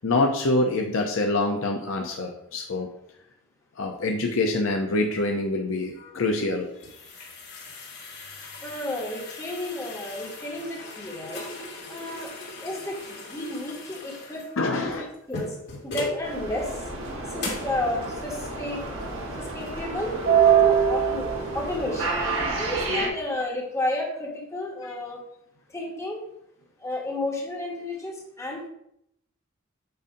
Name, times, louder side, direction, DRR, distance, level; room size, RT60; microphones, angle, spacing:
voice 1, 0.0-2.9 3.8-6.7 14.6-15.0 24.8-24.9, left 2 dB, 75° left, 2 dB, 0.7 m, -25 dB
sound 1, 6.6-16.2 16.7-16.8 17.4-17.8, left 3 dB, 55° left, 2.1 m, -38 dB
voice 2, 8.4-11.5 11.9-12.3 12.6-15.6 15.8-16.8 17.3-19.0 19.4-20.2 20.6-22.2 22.5-25.2 25.7-26.2 26.8-28.7, left 1 dB, 15° left, -1 dB, 1.4 m, -32 dB
sound 2, 16.2-23.1, right 6 dB, 70° right, 1.5 m, -25 dB
7.9 x 2.7 x 5.1 m, 0.76 s
head